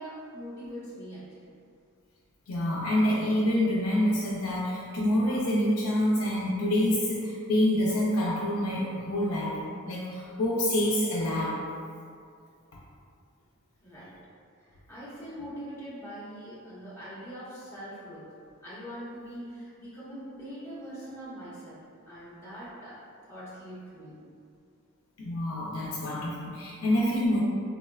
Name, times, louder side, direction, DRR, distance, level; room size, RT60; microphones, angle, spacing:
voice 1, 0.0-1.5 13.8-14.2 14.6-18.2 18.6-21.8 22.1-24.2, equal, 15° left, -11 dB, 0.9 m, -42 dB
voice 2, 2.5-9.6 9.8-11.5 25.2-27.4, left 1 dB, 80° left, -5 dB, 0.4 m, -27 dB
3.6 x 2.1 x 2.3 m, 2.3 s
head